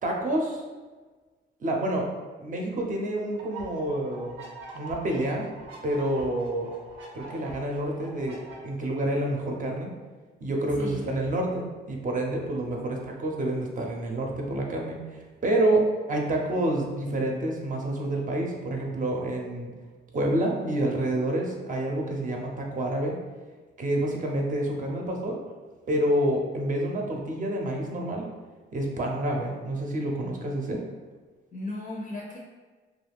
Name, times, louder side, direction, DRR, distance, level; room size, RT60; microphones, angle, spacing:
voice 1, 0.0-0.6 1.6-2.1 2.4-4.4 4.7-5.5 5.8-6.7 7.1-8.4 8.6-9.9 10.4-19.7 20.1-23.2 23.8-25.4 25.9-28.3 28.7-30.8, right 1 dB, 40° right, 0 dB, 0.6 m, -28 dB
sound 1, 3.4-8.6, right 2 dB, 90° right, 0.7 m, -44 dB
voice 2, 10.8-11.1 31.5-32.4, left 2 dB, 40° left, -2 dB, 0.5 m, -36 dB
2.3 x 2.2 x 3.4 m, 1.3 s
cardioid pair, 90°, 20 cm